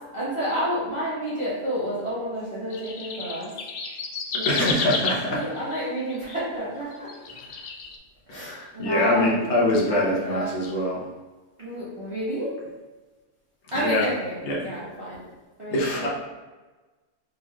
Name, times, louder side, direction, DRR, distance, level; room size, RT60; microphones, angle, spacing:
voice 1, 0.1-3.5 4.3-4.8 5.3-7.1 8.3-9.4 9.7-10.5 11.6-12.5 13.7-15.2 15.6-16.1, right 1 dB, 20° right, -11 dB, 1.3 m, -30 dB
sound 1, 2.7-6.4 6.9-8.0, left 4 dB, 80° left, 0.5 m, -31 dB
voice 2, 4.4-5.4 8.3-11.0 13.8-14.1 14.4-14.7 15.7-16.1, left 1 dB, 50° left, -4 dB, 1.2 m, -24 dB
3.8 x 3.7 x 3.0 m, 1.2 s
omnidirectional pair, 1.6 m